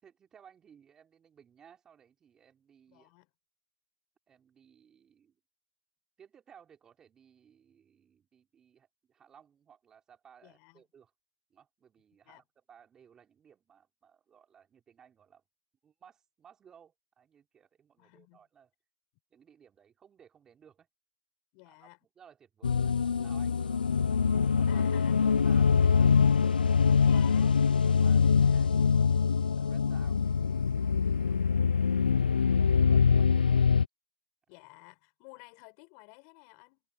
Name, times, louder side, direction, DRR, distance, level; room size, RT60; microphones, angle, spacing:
voice 1, 0.0-3.1 4.3-5.4 6.2-11.1 11.5-15.4 15.8-18.7 19.3-20.9 21.6-24.8 25.2-27.2 27.9-28.8 29.5-32.0 32.3-33.7, right 8 dB, 15° right, 5.1 m, -60 dB
voice 2, 2.9-3.3 10.4-10.8 12.2-12.4 18.0-18.4 21.5-22.0 24.7-25.4 25.8-25.9 27.0-27.6 34.5-36.8, left 35 dB, 30° left, 6.6 m, -53 dB
sound 1, 22.6-33.9, left 6 dB, 85° left, 0.4 m, -24 dB
hypercardioid pair, 145°, 5 cm